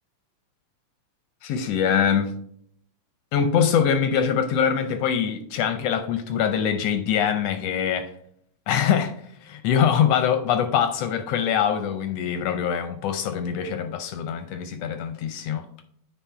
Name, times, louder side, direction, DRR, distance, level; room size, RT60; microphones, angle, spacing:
voice 1, 1.4-2.3 3.3-8.1 8.7-9.1 9.4-15.6, left 8 dB, 75° left, 1.5 m, -23 dB
9.1 x 4.5 x 4.5 m
omnidirectional pair, 3.3 m